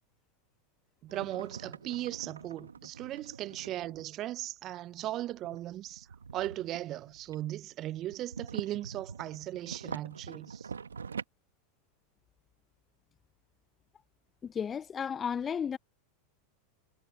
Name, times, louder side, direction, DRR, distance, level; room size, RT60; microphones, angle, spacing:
voice 1, 1.0-6.1 6.3-10.7, right 14 dB, 40° right, 0.7 m, -38 dB
sound 1, 1.1-4.1 5.3-7.6 8.0-11.2, right 6 dB, 85° right, 1.2 m, -44 dB
voice 2, 14.4-15.8, left 7 dB, 25° left, 0.6 m, -33 dB
hypercardioid pair, 90°, 0 cm